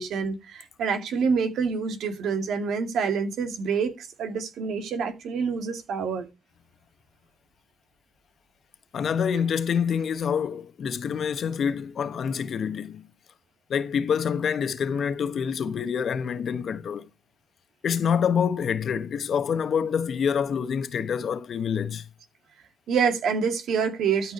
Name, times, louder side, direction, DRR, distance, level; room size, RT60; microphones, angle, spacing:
voice 1, 0.0-6.3 22.9-24.3, right 6 dB, 75° right, 2.2 m, -27 dB
voice 2, 8.9-13.1 13.7-17.1 17.8-22.1, left 7 dB, 55° left, 1.2 m, -26 dB
13.0 x 4.8 x 4.5 m
cardioid pair, 90°, 0 cm